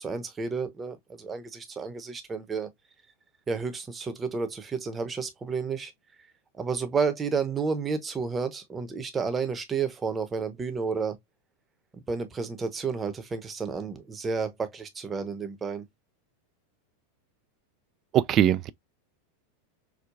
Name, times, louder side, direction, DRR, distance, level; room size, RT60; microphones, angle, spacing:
voice 1, 0.0-2.7 3.5-5.9 6.6-11.2 11.9-15.8, right 5 dB, 20° right, 0.8 m, -31 dB
voice 2, 18.1-18.7, right 11 dB, 40° right, 0.3 m, -21 dB
4.6 x 2.2 x 2.3 m
hypercardioid pair, 105°, 0 cm